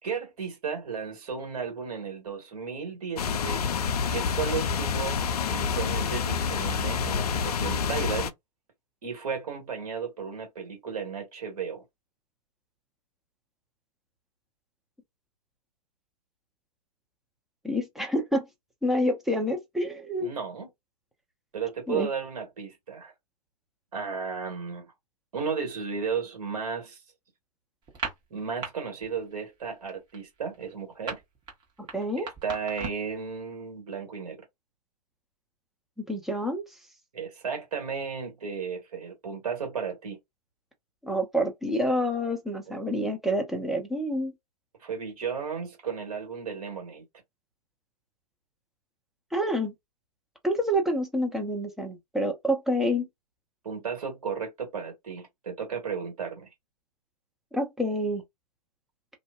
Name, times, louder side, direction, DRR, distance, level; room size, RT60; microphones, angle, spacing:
voice 1, 0.0-3.7 4.1-8.3 9.0-11.8 20.2-20.7 21.5-23.1 23.9-24.9 25.3-27.0 28.3-31.2 32.2-34.4 37.1-40.2 44.8-47.0 53.6-56.5, right 6 dB, 60° right, 1.5 m, -34 dB
sound 1, 3.2-8.3, left 6 dB, 70° left, 0.4 m, -28 dB
voice 2, 17.6-18.4 18.8-20.3 21.9-22.1 31.9-32.3 36.1-36.6 41.0-44.3 49.3-49.7 50.4-53.1 57.5-58.2, equal, ahead, 0.5 m, -27 dB
sound 2, 27.8-28.7 29.0-29.3 29.6-33.2, right 4 dB, 20° right, 1.0 m, -37 dB
2.5 x 2.1 x 2.3 m
figure-of-eight pair, 110°, 20 cm